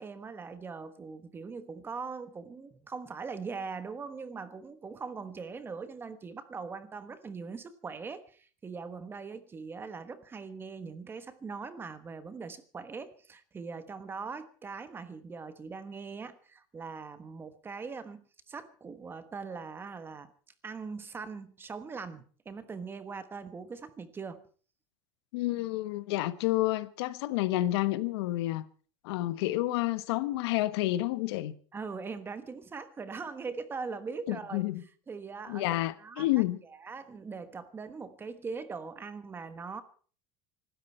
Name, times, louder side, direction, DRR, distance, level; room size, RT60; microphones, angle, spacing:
voice 1, 0.0-20.3 20.6-24.4 31.7-34.6 35.1-36.3 36.6-39.8, right 5 dB, 15° right, 1.2 m, -41 dB
voice 2, 25.3-28.7 29.0-31.5 34.3-34.8 35.5-36.6, left 16 dB, 80° left, 1.3 m, -29 dB
25.0 x 13.0 x 4.5 m
cardioid pair, 160°, 13 cm